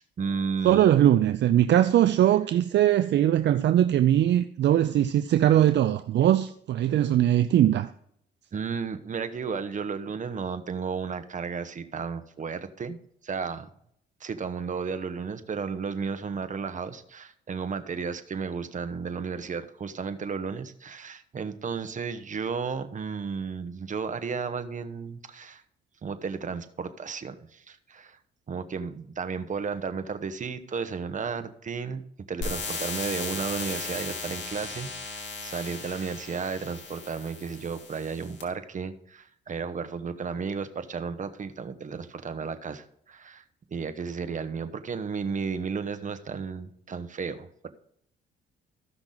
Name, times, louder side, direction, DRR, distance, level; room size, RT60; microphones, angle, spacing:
voice 1, 0.0-0.9 8.5-13.7 14.2-25.6 26.0-28.2 28.5-32.0 32.3-43.4 43.7-47.7, right 5 dB, 40° right, 1.1 m, -33 dB
voice 2, 0.6-7.9, right 11 dB, 60° right, 0.5 m, -21 dB
sound 1, 32.4-38.4, left 4 dB, 65° left, 2.5 m, -36 dB
15.0 x 5.9 x 3.9 m
cardioid pair, 90°, 20 cm